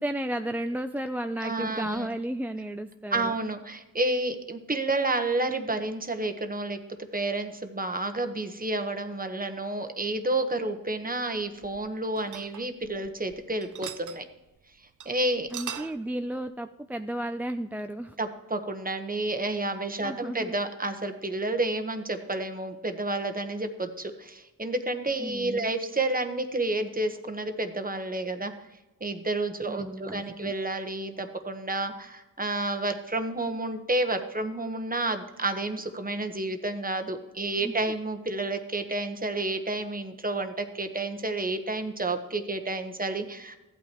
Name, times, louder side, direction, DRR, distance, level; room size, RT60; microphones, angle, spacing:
voice 1, 0.0-3.3 15.5-18.2 20.0-20.5 25.2-25.7 29.7-30.5 37.6-37.7, right 1 dB, 5° right, 7 dB, 0.4 m, -33 dB
voice 2, 1.4-2.1 3.1-6.8 7.1-14.2 15.0-15.5 18.2-28.5 29.0-43.6, right 2 dB, 25° right, 6 dB, 1.2 m, -30 dB
sound 1, 11.3-13.3 13.6-14.2 14.6-14.7 15.0-15.1 15.4-16.0, right 9 dB, 65° right, 0.5 m, -40 dB
15.0 x 8.6 x 3.1 m, 1.0 s
cardioid pair, 60°, 32 cm